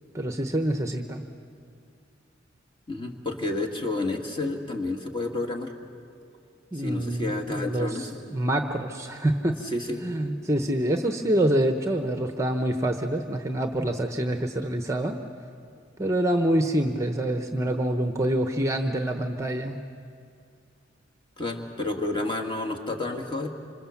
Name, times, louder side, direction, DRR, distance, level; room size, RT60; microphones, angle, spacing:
voice 1, 0.1-1.2 6.7-9.6 10.0-15.2 16.0-19.8, right 1 dB, 15° right, 6 dB, 0.9 m, -26 dB
voice 2, 2.9-5.7 6.7-8.1 9.7-10.0 21.4-23.5, left 2 dB, 25° left, 3 dB, 2.0 m, -30 dB
26.5 x 26.0 x 7.2 m, 2.3 s
head